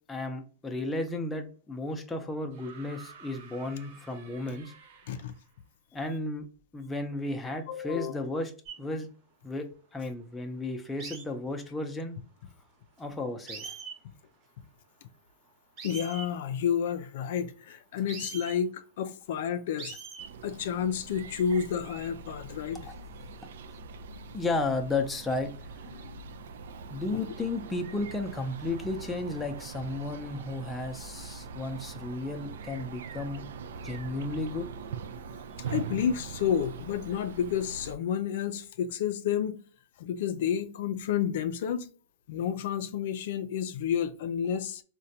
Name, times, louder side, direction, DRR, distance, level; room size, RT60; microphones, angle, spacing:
voice 1, 0.1-4.7 5.9-6.4 6.7-8.5 8.8-9.1 9.4-12.2 13.0-13.7 22.9-23.0 24.3-25.5 26.9-33.4 33.8-34.7, left 2 dB, 10° left, 0.5 m, -33 dB
sound 1, 2.5-5.6 6.8-6.9, right 5 dB, 60° right, 0.7 m, -52 dB
voice 2, 7.7-8.2 15.8-20.0 20.4-22.9 25.9-26.1 27.1-27.3 35.7-39.6 40.0-41.9 42.3-44.8, left 8 dB, 65° left, 0.3 m, -30 dB
sound 2, 8.6-8.8 11.0-11.2 13.0-13.1 13.5-14.0 15.8-16.3 18.0-18.6 19.8-20.3 21.2-21.5, right 5 dB, 35° right, 1.0 m, -41 dB
sound 3, 20.2-38.0, right 5 dB, 80° right, 0.3 m, -42 dB
3.8 x 2.2 x 2.7 m
supercardioid pair, 145°, 0 cm